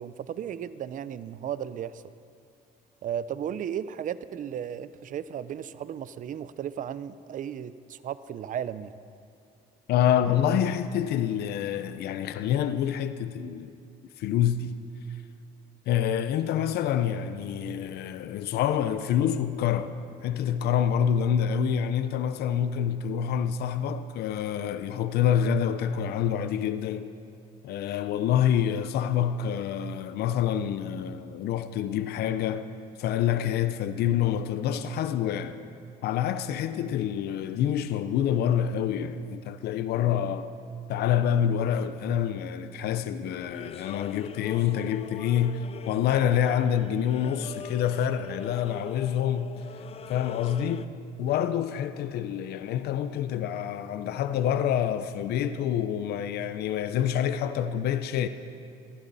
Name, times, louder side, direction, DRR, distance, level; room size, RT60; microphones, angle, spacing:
voice 1, 0.0-2.0 3.0-9.0, right 9 dB, 50° right, 0.6 m, -35 dB
voice 2, 9.9-13.7 14.2-14.7 15.9-19.9 20.2-27.1 27.6-32.7 33.0-35.6 36.0-40.5 40.9-49.5 50.1-50.9 51.2-58.3, left 9 dB, 70° left, 0.7 m, -27 dB
sound 1, 43.4-50.9, left 8 dB, 35° left, 0.5 m, -42 dB
22.5 x 15.5 x 4.1 m
cardioid pair, 110°, 17 cm